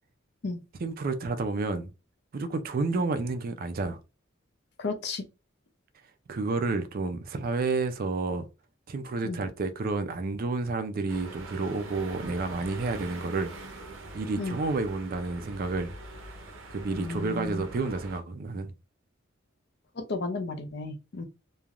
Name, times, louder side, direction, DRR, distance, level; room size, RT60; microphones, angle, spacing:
voice 1, 0.8-1.9 2.3-4.0 6.3-8.5 8.9-13.5 14.1-15.9 16.7-18.7, right 3 dB, 45° right, 0.4 m, -30 dB
voice 2, 4.8-5.2 9.2-9.4 14.4-14.6 16.9-17.6 20.0-21.3, left 3 dB, 55° left, 0.5 m, -33 dB
sound 1, 11.1-18.2, right 1 dB, 75° right, 0.7 m, -43 dB
3.2 x 2.2 x 2.4 m
head